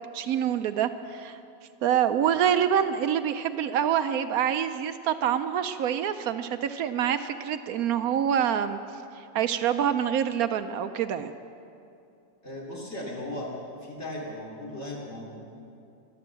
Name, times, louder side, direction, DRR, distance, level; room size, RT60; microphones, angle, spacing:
voice 1, 0.1-1.4 1.8-8.8 9.3-11.3, right 9 dB, 70° right, 11 dB, 0.9 m, -26 dB
voice 2, 12.4-13.5 13.8-15.4, left 1 dB, 40° left, -4 dB, 3.2 m, -37 dB
14.0 x 12.0 x 7.6 m, 2.6 s
omnidirectional pair, 1.9 m